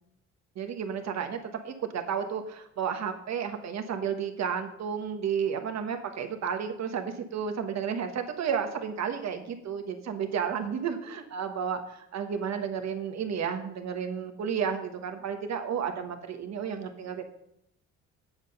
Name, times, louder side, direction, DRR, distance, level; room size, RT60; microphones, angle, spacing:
voice 1, 0.5-1.4 1.6-17.2, right 7 dB, 60° right, 6 dB, 1.4 m, -32 dB
8.0 x 7.7 x 5.4 m, 0.77 s
cardioid pair, 90°, 30 cm